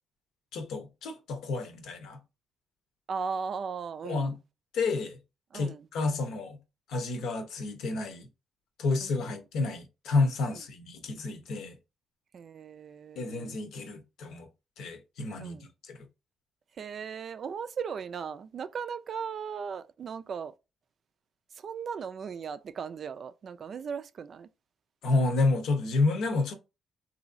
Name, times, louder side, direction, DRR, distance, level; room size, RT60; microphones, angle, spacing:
voice 1, 0.5-2.2 4.0-4.3 4.7-5.2 5.5-6.6 6.9-8.3 8.8-11.7 13.2-14.5 14.8-15.6 15.9-16.0 25.0-26.5, left 3 dB, 80° left, 0.8 m, -30 dB
voice 2, 3.1-4.4 5.5-5.9 9.0-9.4 10.5-10.6 12.3-13.6 15.4-15.7 16.8-20.5 21.5-24.5, right 6 dB, 55° right, 0.3 m, -37 dB
3.0 x 2.7 x 2.5 m
cardioid pair, 90°, 0 cm